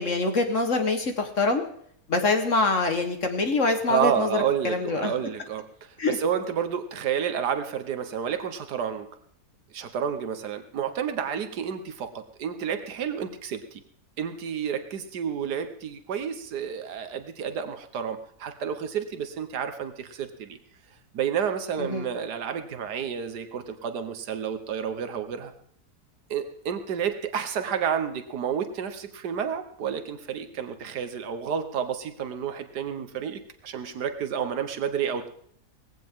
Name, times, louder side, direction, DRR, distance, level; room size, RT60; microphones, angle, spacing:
voice 1, 0.0-1.6 2.1-5.1 6.0-6.2 21.8-22.1, left 3 dB, 50° left, 5 dB, 1.7 m, -25 dB
voice 2, 3.9-5.7 6.1-9.1 9.7-13.8 14.2-20.6 21.1-25.5 26.3-35.3, right 8 dB, 80° right, 8 dB, 1.7 m, -30 dB
18.5 x 16.0 x 3.7 m, 0.65 s
omnidirectional pair, 1.7 m